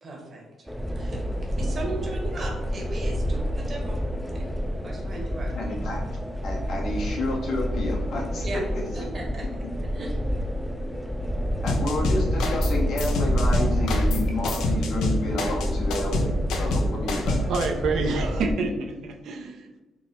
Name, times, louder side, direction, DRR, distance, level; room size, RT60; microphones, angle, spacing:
voice 1, 0.0-0.7 1.0-1.2 1.6-4.0 4.3-4.5 4.8-5.7 8.4-8.6 8.9-9.5 9.8-10.1, right 2 dB, 40° right, 0 dB, 0.9 m, -37 dB
sound 1, 0.7-18.5, equal, ahead, 0.3 m, -28 dB
voice 2, 5.5-6.0 6.4-9.0 11.6-17.4, left 2 dB, 70° left, -2 dB, 0.9 m, -30 dB
sound 2, 11.7-12.7 13.0-17.7, left 1 dB, 85° left, 0.5 m, -26 dB
voice 3, 17.4-19.8, right 3 dB, 75° right, 4 dB, 0.4 m, -28 dB
3.4 x 2.0 x 4.0 m, 1.1 s
cardioid pair, 90°, 0 cm